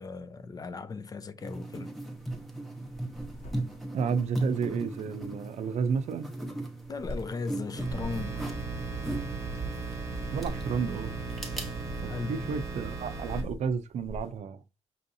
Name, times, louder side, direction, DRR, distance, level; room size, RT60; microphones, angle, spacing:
voice 1, 0.0-1.9 6.9-8.4 12.0-12.5, left 4 dB, 30° left, 0.3 m, -37 dB
sound 1, 1.4-12.0, right 1 dB, ahead, 0.8 m, -38 dB
sound 2, 2.1-2.4 2.8-5.3 6.4-7.3 7.8-8.3 9.9-11.0 12.5-14.4, left 1 dB, 65° left, 2.0 m, -43 dB
voice 2, 3.9-6.3 10.3-11.1 12.0-14.6, right 6 dB, 70° right, 0.4 m, -31 dB
sound 3, 7.8-13.4, right 3 dB, 25° right, 1.0 m, -36 dB
5.5 x 2.6 x 2.6 m
wide cardioid pair, 135°, 12 cm